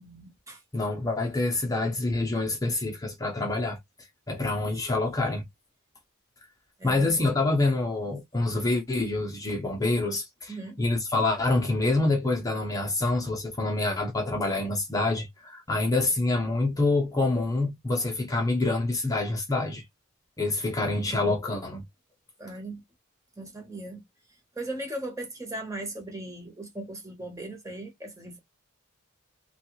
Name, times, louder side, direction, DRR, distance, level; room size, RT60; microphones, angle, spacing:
voice 1, 0.0-0.6 6.8-7.2 10.5-10.8 20.9-21.4 22.4-22.8 23.4-24.0 24.5-28.4, right 1 dB, 15° right, 1.0 m, -38 dB
voice 2, 0.7-3.8 4.3-5.4 6.8-19.8 20.4-21.8, left 2 dB, 15° left, 0.7 m, -26 dB
3.2 x 2.3 x 3.1 m
head